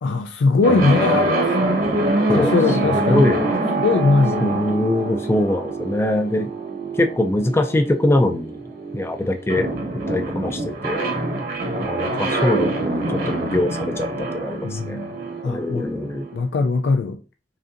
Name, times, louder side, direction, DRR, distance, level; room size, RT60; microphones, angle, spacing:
voice 1, 0.0-1.5 2.3-3.3 3.7-4.5 14.6-15.2 15.4-15.9 16.3-17.2, left 3 dB, 90° left, 0.4 m, -20 dB
sound 1, 0.6-16.4, right 2 dB, 55° right, 1.1 m, -25 dB
voice 2, 2.9-3.4 4.4-6.5 6.9-8.6 8.9-9.7 10.1-11.0 11.8-15.0 15.4-16.3, left 1 dB, 15° left, 0.3 m, -22 dB
5.1 x 2.6 x 2.5 m
head